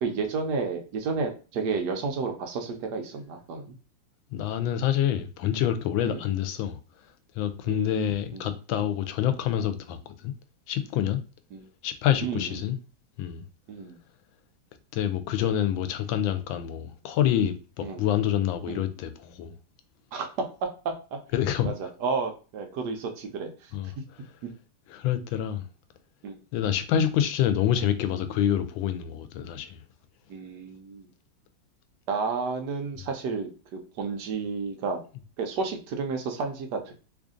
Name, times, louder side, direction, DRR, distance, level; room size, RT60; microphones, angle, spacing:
voice 1, 0.0-3.7 6.0-6.2 7.7-8.5 11.5-11.7 12.2-12.6 13.7-14.0 17.8-18.0 18.7-18.9 20.1-21.2 21.6-23.7 26.2-26.4 30.3-31.1 32.1-35.0 35.4-36.9, right 4 dB, 70° right, 1.1 m, -32 dB
voice 2, 4.3-6.8 7.4-10.0 10.2-10.3 10.7-11.2 11.8-12.8 13.2-13.4 14.9-19.5 21.3-21.7 23.7-23.9 24.9-25.6 26.5-29.8, left 10 dB, 90° left, 1.3 m, -27 dB
3.2 x 2.6 x 3.6 m
omnidirectional pair, 2.1 m